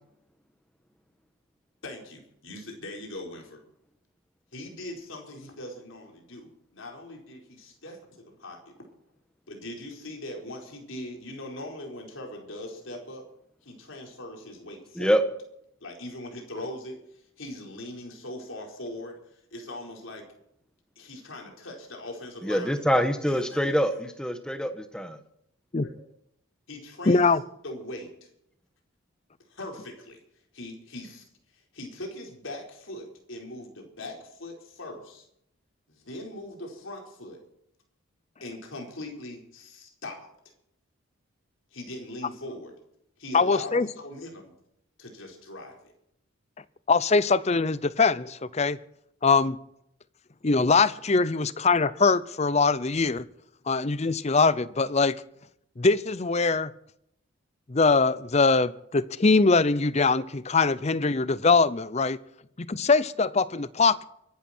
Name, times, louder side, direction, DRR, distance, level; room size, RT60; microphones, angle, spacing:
voice 1, 1.8-3.6 4.5-8.7 9.5-13.3 13.6-15.2 15.8-20.3 21.0-22.9 23.3-23.8 25.8-25.9 26.7-27.3 27.6-28.3 29.4-30.2 30.5-35.3 35.9-37.4 38.4-40.3 41.7-42.7 43.2-44.5 45.0-45.9, left 1 dB, 65° left, 4.5 m, -41 dB
voice 2, 22.4-23.9 24.2-25.2, equal, 5° left, 1.3 m, -25 dB
voice 3, 27.1-27.4 43.3-43.9 46.9-48.8 49.2-49.6 50.4-53.2 53.7-55.2 55.8-56.7 57.7-62.2 62.6-64.0, left 4 dB, 30° left, 0.6 m, -22 dB
24.0 x 11.5 x 4.4 m
head